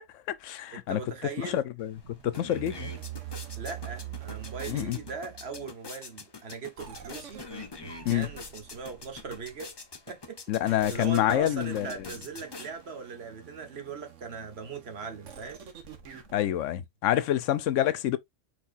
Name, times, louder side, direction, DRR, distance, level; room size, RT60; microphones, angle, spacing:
voice 1, 0.0-1.0 1.4-1.9 2.2-2.9 4.7-5.0 8.1-8.3 10.5-11.9 16.3-18.2, left 12 dB, 75° left, 0.9 m, -27 dB
voice 2, 0.7-1.6 3.6-7.4 8.1-9.7 10.1-15.6, right 5 dB, 55° right, 1.3 m, -40 dB
sound 1, 1.8-1.9 2.2-13.1, left 4 dB, 30° left, 0.5 m, -45 dB
sound 2, 1.9-5.7 6.8-9.8 10.8-16.4, right 10 dB, 70° right, 1.3 m, -45 dB
4.6 x 4.5 x 2.5 m
omnidirectional pair, 1.3 m